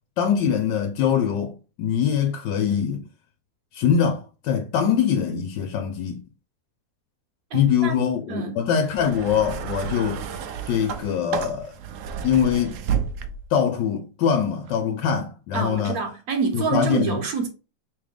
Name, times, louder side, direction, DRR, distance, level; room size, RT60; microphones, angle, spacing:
voice 1, 0.2-3.0 3.7-6.2 7.5-10.2 10.7-11.7 12.2-12.8 13.5-16.0 16.5-17.2, left 8 dB, 80° left, 1.3 m, -23 dB
voice 2, 7.5-8.0 8.3-8.6 15.5-17.5, right 5 dB, 60° right, 1.2 m, -27 dB
sound 1, 8.8-13.6 14.6-14.7, right 8 dB, 80° right, 0.7 m, -31 dB
3.6 x 3.2 x 3.3 m
omnidirectional pair, 1.9 m